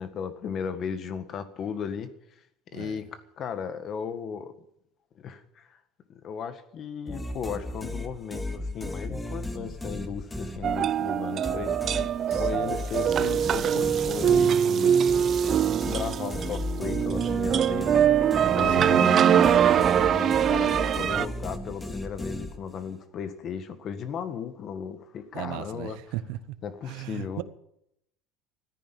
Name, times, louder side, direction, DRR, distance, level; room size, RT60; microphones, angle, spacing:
voice 1, 0.0-2.1 2.7-4.5 5.2-5.8 6.1-11.7 12.4-15.0 15.7-18.0 18.5-26.0 26.6-27.4, left 7 dB, 45° left, 1.7 m, -35 dB
sound 1, 7.1-11.0 11.4-19.1 19.4-22.9, left 1 dB, 10° left, 2.3 m, -36 dB
sound 2, 10.6-21.3, right 9 dB, 40° right, 0.6 m, -23 dB
voice 2, 12.3-12.7 18.8-19.1 25.3-26.4 26.9-27.4, right 15 dB, 70° right, 0.8 m, -36 dB
14.0 x 10.0 x 8.9 m
supercardioid pair, 110°, 0 cm